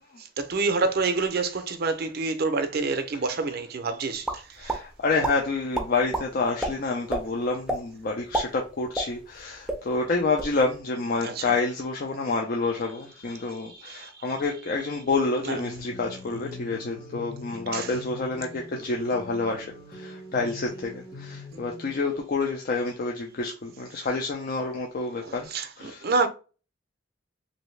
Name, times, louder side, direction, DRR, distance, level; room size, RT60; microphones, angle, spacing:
voice 1, 0.4-4.8 11.2-11.5 13.7-14.3 15.4-15.6 17.7-17.9 25.2-26.3, right 4 dB, 55° right, 0.5 m, -28 dB
sound 1, 4.2-4.8 5.2-5.3 5.7-6.2 6.6-6.7 7.1-7.2 7.7-7.8 8.2-9.4 9.7-9.8 10.2-10.5, right 1 dB, 5° right, 0.5 m, -28 dB
voice 2, 4.6-26.1, left 3 dB, 50° left, 0.5 m, -28 dB
sound 2, 15.5-21.9, left 2 dB, 20° left, 0.8 m, -43 dB
3.0 x 2.7 x 3.2 m
head